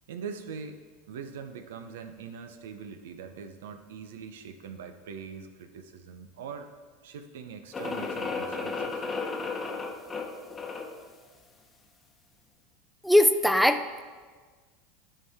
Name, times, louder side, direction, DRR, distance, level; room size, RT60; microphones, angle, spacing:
voice 1, 0.1-0.8 1.1-6.7 7.0-9.0, right 6 dB, 80° right, 8 dB, 0.7 m, -42 dB
sound 1, 7.7-11.0, left 4 dB, 20° left, 0.9 m, -34 dB
voice 2, 13.0-14.0, left 1 dB, ahead, 9 dB, 0.5 m, -21 dB
12.5 x 4.7 x 3.6 m, 1.5 s
hypercardioid pair, 95°, 0 cm